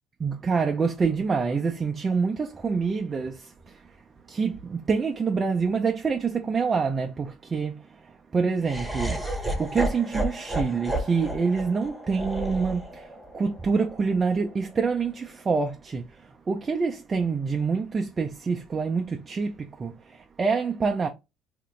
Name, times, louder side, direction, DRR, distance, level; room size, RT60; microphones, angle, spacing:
voice 1, 0.2-3.8 4.3-7.9 8.3-9.2 9.6-16.0 16.5-21.1, right 5 dB, 30° right, 0.4 m, -26 dB
Laughter, 8.6-14.8, right 1 dB, 5° right, 1.0 m, -32 dB
2.9 x 2.5 x 3.2 m
supercardioid pair, 90°, 0 cm